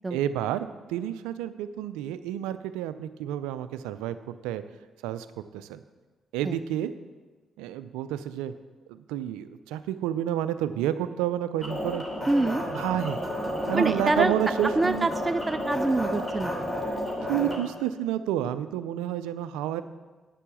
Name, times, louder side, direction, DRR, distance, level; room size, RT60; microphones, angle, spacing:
voice 1, 0.1-4.6 5.0-5.3 5.5-5.8 6.3-7.0 7.6-8.5 8.9-12.0 12.7-13.2 13.7-15.1 16.9-17.0 17.3-19.8, right 11 dB, 85° right, 12 dB, 0.4 m, -30 dB
sound 1, 11.6-17.6, equal, 15° left, 3.1 m, -31 dB
voice 2, 12.3-12.6 13.7-14.3 14.8-16.6, right 2 dB, 25° right, 11 dB, 0.4 m, -26 dB
9.1 x 6.7 x 7.3 m, 1.3 s
hypercardioid pair, 50°, 0 cm